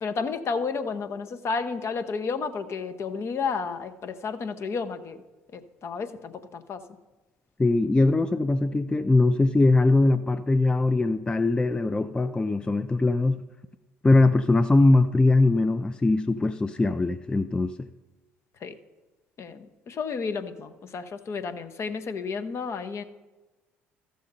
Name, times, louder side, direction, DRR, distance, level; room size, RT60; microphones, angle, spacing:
voice 1, 0.0-5.2 5.5-6.8 18.6-18.8 19.4-23.0, left 5 dB, 45° left, 9 dB, 0.8 m, -32 dB
voice 2, 7.6-13.4 14.0-17.9, left 2 dB, 15° left, 11 dB, 0.4 m, -21 dB
13.5 x 6.5 x 4.0 m, 1.2 s
hypercardioid pair, 60°, 6 cm